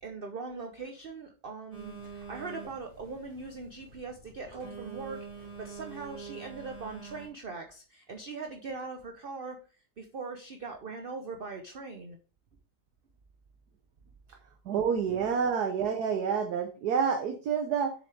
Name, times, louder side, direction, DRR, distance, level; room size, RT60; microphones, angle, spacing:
voice 1, 0.0-9.6 10.0-12.2 15.1-15.3, right 4 dB, 45° right, 4 dB, 0.7 m, -41 dB
Telephone, 1.7-7.3, right 5 dB, 30° right, 3.7 m, -45 dB
voice 2, 14.7-17.9, right 6 dB, 70° right, 5 dB, 1.4 m, -28 dB
7.5 x 6.9 x 3.3 m, 0.36 s
omnidirectional pair, 1.8 m